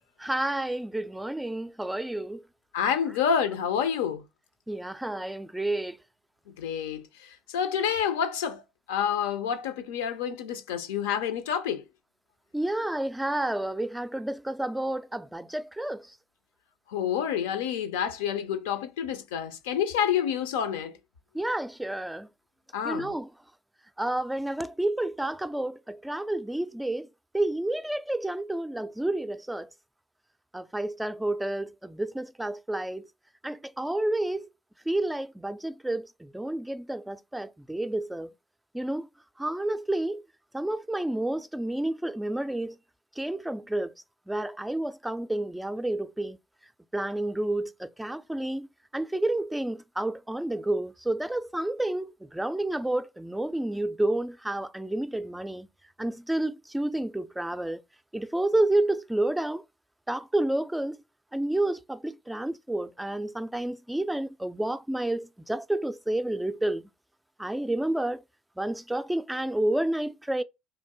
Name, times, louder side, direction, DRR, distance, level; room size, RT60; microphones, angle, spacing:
voice 1, 0.2-2.4 4.7-6.0 12.5-16.1 21.3-22.3 22.8-23.3 24.0-27.1 27.3-29.7 30.5-33.1 33.4-34.5 34.9-38.3 38.7-39.1 39.4-40.2 40.5-42.8 43.2-43.9 44.3-46.4 46.9-48.7 48.9-55.7 56.0-57.8 58.1-59.6 60.1-61.0 61.3-66.9 67.4-68.2 68.6-70.4, right 1 dB, 5° right, 0.3 m, -30 dB
voice 2, 2.7-4.2 6.5-7.1 7.5-8.6 8.9-11.8 16.9-20.9 22.7-23.1, left 8 dB, 85° left, 0.5 m, -28 dB
3.1 x 2.6 x 3.5 m
supercardioid pair, 75°, 0 cm